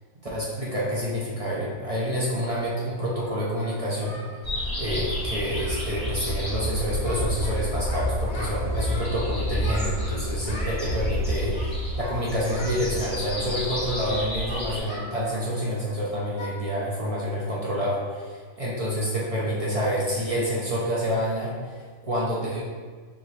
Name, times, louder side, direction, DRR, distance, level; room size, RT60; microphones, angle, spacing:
voice 1, 0.3-4.1 4.8-22.6, equal, 55° right, -6 dB, 0.3 m, -28 dB
Singing, 3.1-4.4 4.6-4.8 5.1-5.3 5.5-5.9 6.2-6.4 6.6-7.5 7.8-9.2 9.6-10.8 11.5-12.2 12.5-12.8 13.3-15.9 16.4-16.6 16.9-17.1 17.5-17.6 18.1-18.4, equal, 80° left, 1.6 m, -41 dB
sound 1, 4.4-14.8, equal, 5° right, 1.3 m, -29 dB
4.6 x 3.0 x 3.2 m, 1.5 s
omnidirectional pair, 1.6 m